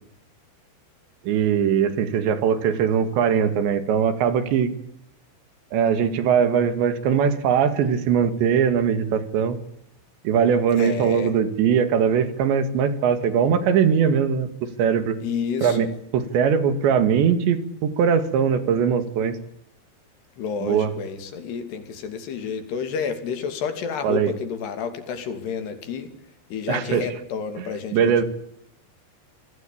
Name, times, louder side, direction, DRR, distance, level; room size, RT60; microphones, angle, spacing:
voice 1, 1.2-4.7 5.7-9.6 10.2-14.5 14.8-15.2 15.6-15.9 16.1-19.4 20.6-20.9 24.0-24.3 26.7-27.0 27.9-28.2, right 7 dB, 75° right, 11 dB, 4.2 m, -21 dB
voice 2, 10.7-11.3 15.2-15.9 20.4-26.1 26.5-28.2, left 6 dB, 65° left, 9 dB, 4.6 m, -30 dB
27.5 x 19.0 x 8.6 m, 0.71 s
omnidirectional pair, 5.3 m